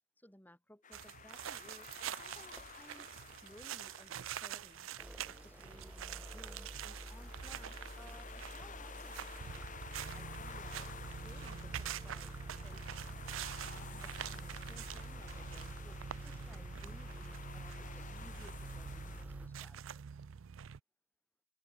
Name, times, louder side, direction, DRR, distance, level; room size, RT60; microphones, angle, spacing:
voice 1, 0.2-4.9 5.3-9.7 10.1-13.2 13.7-20.1, left 1 dB, 10° left, 6.8 m, -60 dB
sound 1, 0.8-19.2, left 6 dB, 40° left, 2.9 m, -53 dB
sound 2, 0.9-20.8, right 8 dB, 75° right, 0.5 m, -46 dB
sound 3, 1.9-2.1 2.6-4.1 4.9-19.5, equal, 5° right, 0.7 m, -49 dB
open air
head